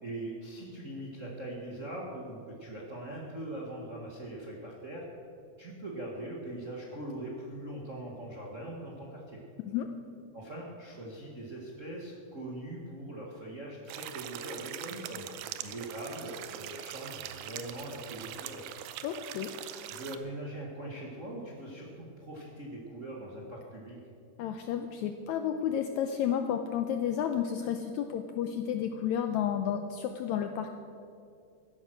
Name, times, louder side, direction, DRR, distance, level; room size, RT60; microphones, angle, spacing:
voice 1, 0.0-5.1 5.6-9.4 10.3-15.3 15.6-18.6 19.8-24.0, right 1 dB, 45° right, -2 dB, 1.0 m, -41 dB
sound 1, 13.9-20.2, right 12 dB, 90° right, 2.4 m, -42 dB
voice 2, 19.0-19.5 24.4-30.7, left 9 dB, 90° left, 6 dB, 1.6 m, -31 dB
14.5 x 11.0 x 6.1 m, 2.5 s
omnidirectional pair, 3.9 m